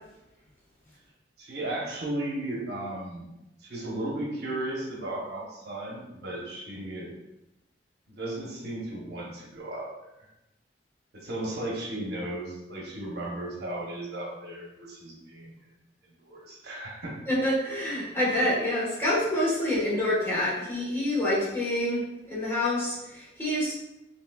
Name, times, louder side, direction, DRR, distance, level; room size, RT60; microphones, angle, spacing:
voice 1, 1.4-3.3 3.6-7.1 8.2-9.9 11.1-15.5 16.3-17.2, right 1 dB, 65° right, -3 dB, 1.0 m, -35 dB
voice 2, 17.2-23.7, left 1 dB, 15° left, -7 dB, 1.4 m, -27 dB
6.0 x 2.8 x 2.3 m, 0.93 s
head